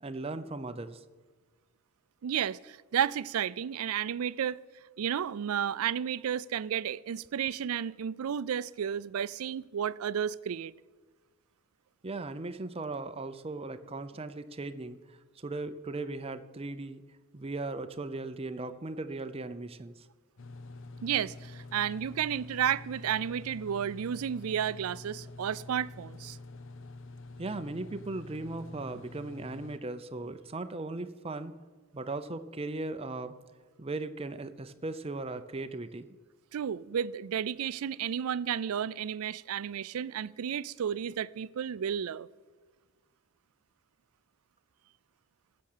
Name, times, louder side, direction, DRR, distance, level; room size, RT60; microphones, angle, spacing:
voice 1, 0.0-1.0 12.0-17.0 17.3-20.1 27.4-31.6 31.9-33.4 33.8-36.1, right 2 dB, 25° right, 0.6 m, -38 dB
voice 2, 2.2-4.6 5.0-10.7 21.0-26.4 36.5-42.3, right 9 dB, 85° right, 0.4 m, -32 dB
sound 1, 20.4-29.8, left 2 dB, 60° left, 0.7 m, -47 dB
15.0 x 7.4 x 6.7 m
head